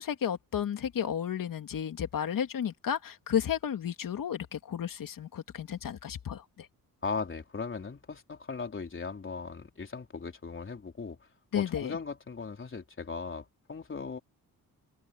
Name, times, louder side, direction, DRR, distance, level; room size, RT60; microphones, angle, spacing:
voice 1, 0.0-6.7 11.5-11.9, left 9 dB, 65° left, 2.7 m, -33 dB
voice 2, 7.0-11.3 11.5-14.2, left 5 dB, 35° left, 4.0 m, -38 dB
open air
cardioid pair, 100°, 36 cm